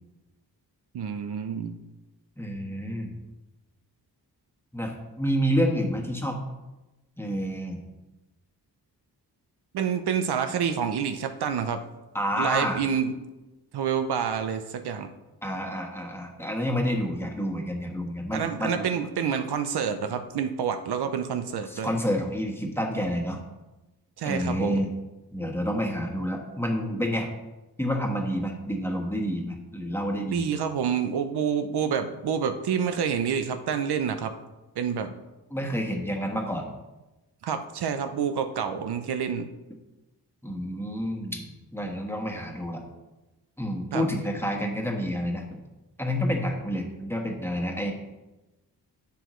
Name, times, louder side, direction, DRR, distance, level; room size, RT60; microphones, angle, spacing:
voice 1, 0.9-1.8 9.7-11.8 12.4-13.1 13.7-15.1 18.3-21.9 24.2-24.8 30.3-34.3 34.8-35.1 37.4-39.5 43.9-44.0, right 7 dB, 80° right, 8 dB, 0.7 m, -28 dB
voice 2, 2.4-3.1 4.7-6.4 7.2-7.8 12.1-12.8 15.4-18.9 21.7-23.4 24.2-24.9 25.3-27.3 27.8-30.5 35.5-36.7 40.4-42.8 43.6-45.6 46.0-47.9, equal, 5° left, 1 dB, 1.4 m, -29 dB
10.5 x 7.0 x 3.1 m, 1.1 s
wide cardioid pair, 100°, 39 cm